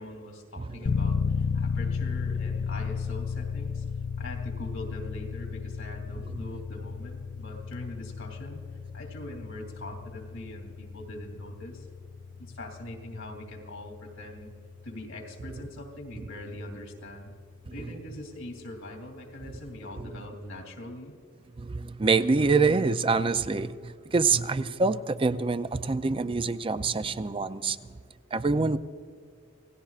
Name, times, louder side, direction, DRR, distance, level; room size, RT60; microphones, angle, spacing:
voice 1, 0.0-3.8 4.2-8.6 8.9-11.9 12.4-14.5 14.8-17.3 17.7-21.1, left 1 dB, 90° left, 2.9 m, -42 dB
voice 2, 0.6-0.9 6.3-6.4 20.0-20.1 21.6-28.0 28.3-28.8, right 4 dB, 25° right, 0.4 m, -26 dB
sound 1, 0.9-17.6, left 5 dB, 45° left, 0.4 m, -34 dB
28.0 x 17.5 x 2.5 m
head